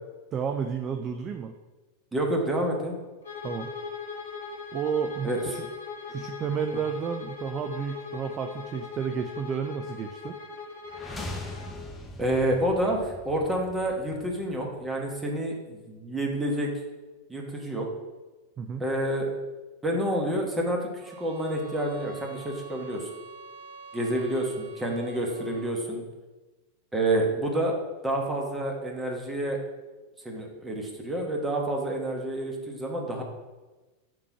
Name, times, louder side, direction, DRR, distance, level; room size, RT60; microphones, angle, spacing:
voice 1, 0.3-1.5 3.4-3.7 4.7-5.7 6.1-10.4 18.6-18.9, right 7 dB, 30° right, 6 dB, 0.4 m, -31 dB
voice 2, 2.1-2.9 5.2-5.4 12.2-16.7 17.3-17.9 18.8-19.3 19.8-23.1 23.9-26.0 26.9-27.8 28.0-29.6 30.2-33.2, right 1 dB, 10° right, 0 dB, 1.3 m, -28 dB
Bowed string instrument, 3.2-11.8, left 5 dB, 65° left, 1.1 m, -40 dB
sound 1, 10.9-14.9, left 1 dB, 10° left, 0.7 m, -41 dB
sound 2, 21.0-25.7, right 3 dB, 50° right, 0.9 m, -47 dB
4.7 x 3.7 x 5.6 m, 1.2 s
figure-of-eight pair, 90°, 0 cm